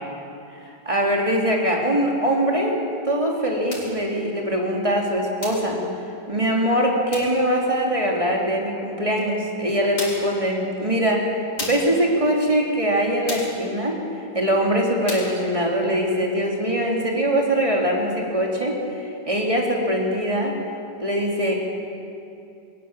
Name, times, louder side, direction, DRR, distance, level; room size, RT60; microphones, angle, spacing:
voice 1, 0.8-5.8 6.3-11.2 11.6-14.0 14.3-18.8 19.3-20.5 21.0-21.5, equal, 20° right, -1 dB, 3.1 m, -22 dB
sound 1, 3.7-4.0 5.4-5.7 7.1-7.4 9.2-9.3 10.0-10.4 11.6-12.0 13.3-13.6 15.1-15.4, left 2 dB, 70° left, 4.4 m, -33 dB
21.5 x 18.5 x 7.5 m, 2.7 s
omnidirectional pair, 1.8 m